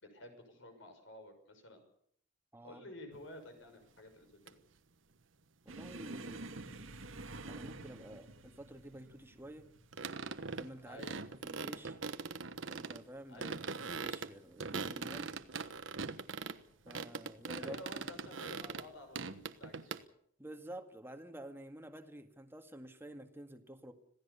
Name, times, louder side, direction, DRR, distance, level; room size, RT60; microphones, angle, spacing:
voice 1, 0.0-1.8 2.6-4.6 10.9-11.2 13.3-13.6 17.6-20.0, left 1 dB, 65° left, 6 dB, 6.3 m, -52 dB
voice 2, 2.5-2.8 5.6-6.5 7.5-9.7 10.6-12.0 12.7-15.3 16.9-17.8 20.4-23.9, right 1 dB, 10° right, 6 dB, 1.9 m, -50 dB
sound 1, 3.1-3.2 4.5-4.6 9.9-10.7 11.0-13.0 13.4-16.6 16.9-18.9 19.2-20.0, right 4 dB, 70° right, 1.2 m, -41 dB
sound 2, 5.7-12.9 13.2-13.6 13.9-14.1 14.9-15.5 16.4-16.6 18.0-18.2, right 2 dB, 85° right, 1.9 m, -50 dB
26.5 x 17.0 x 7.0 m, 0.68 s
head